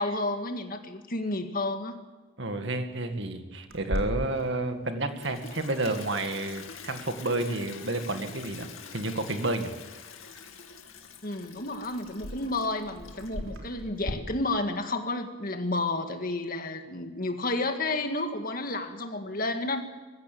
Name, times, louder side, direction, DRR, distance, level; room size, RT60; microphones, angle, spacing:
voice 1, 0.0-2.0 11.2-19.8, left 2 dB, 45° left, 6 dB, 2.0 m, -31 dB
voice 2, 2.4-9.7, right 2 dB, 60° right, 7 dB, 2.1 m, -30 dB
Clock, 3.7-14.1, equal, 80° right, 3.9 m, -41 dB
Toilet flush, 5.0-13.6, left 6 dB, 90° left, 2.4 m, -46 dB
21.5 x 15.5 x 8.8 m, 1.3 s
head